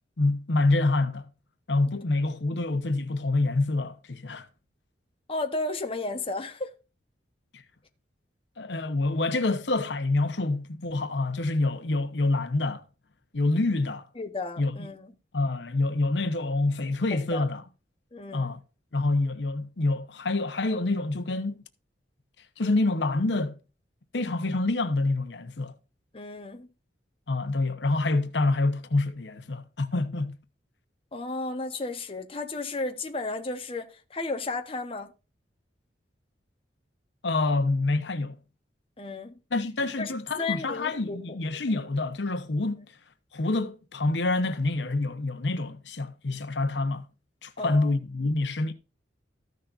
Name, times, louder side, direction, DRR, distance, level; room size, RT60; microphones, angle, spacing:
voice 1, 0.2-1.3 1.7-4.5 7.5-7.6 8.6-12.8 13.3-14.1 14.6-14.8 15.3-17.6 18.3-18.6 18.9-21.6 22.6-23.6 24.1-25.7 27.3-30.4 37.2-38.4 39.5-42.8 43.3-47.1 47.4-48.7, left 2 dB, 80° left, 1.0 m, -27 dB
voice 2, 5.3-6.7 14.1-15.1 17.1-17.5 18.1-18.5 26.1-26.7 31.1-35.1 39.0-39.3 40.0-40.1 40.4-41.4 47.6-47.9, left 3 dB, 30° left, 1.1 m, -33 dB
14.0 x 6.5 x 2.6 m
head